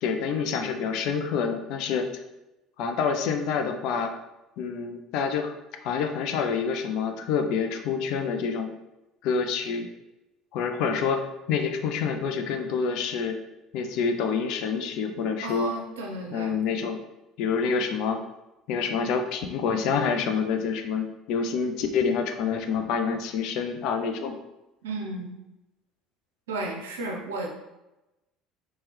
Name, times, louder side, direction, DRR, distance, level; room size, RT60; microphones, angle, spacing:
voice 1, 0.0-2.1 2.8-4.1 4.6-5.5 5.8-8.7 9.2-9.9 10.5-13.4 13.7-15.7 16.3-17.0 17.4-18.2 18.7-24.4, left 6 dB, 60° left, 5 dB, 0.3 m, -27 dB
voice 2, 15.4-16.6 17.6-17.8 24.8-25.4 26.5-27.5, right 2 dB, 75° right, 1 dB, 0.5 m, -33 dB
2.8 x 2.2 x 3.2 m, 0.98 s
figure-of-eight pair, 60°, 0 cm